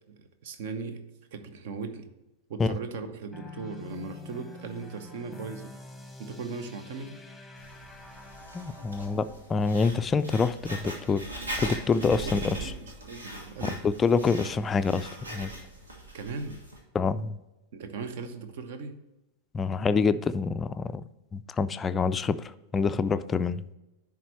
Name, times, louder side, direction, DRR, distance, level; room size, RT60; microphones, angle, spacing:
voice 1, 0.1-2.1 2.5-5.7 6.2-7.2 12.2-13.8 16.1-16.6 17.7-19.0, right 4 dB, 55° right, 10 dB, 0.8 m, -38 dB
sound 1, 3.3-9.5, left 2 dB, ahead, 1.1 m, -46 dB
Writing, 7.6-16.8, right 1 dB, 75° right, 1.6 m, -40 dB
voice 2, 8.5-12.6 13.6-15.5 16.9-17.4 19.5-21.0 21.3-23.6, left 4 dB, 20° left, 13 dB, 0.3 m, -27 dB
10.0 x 3.7 x 4.4 m, 1.0 s
figure-of-eight pair, 90°, 0 cm